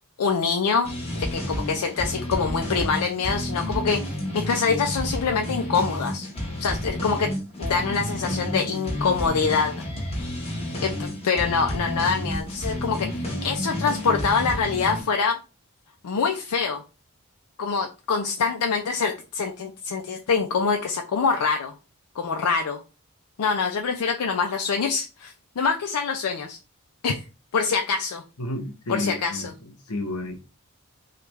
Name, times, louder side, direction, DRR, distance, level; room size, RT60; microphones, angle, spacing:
voice 1, 0.2-6.3 6.6-7.3 7.6-9.8 10.8-15.4 16.0-16.8 17.6-21.7 22.2-22.8 23.4-26.6 27.0-27.2 27.5-28.2 28.9-29.4, left 5 dB, 90° left, 0.5 m, -25 dB
sound 1, 0.8-15.0, left 1 dB, 25° left, 0.9 m, -30 dB
voice 2, 28.4-30.4, left 1 dB, 75° left, 0.9 m, -32 dB
3.3 x 2.4 x 3.1 m
head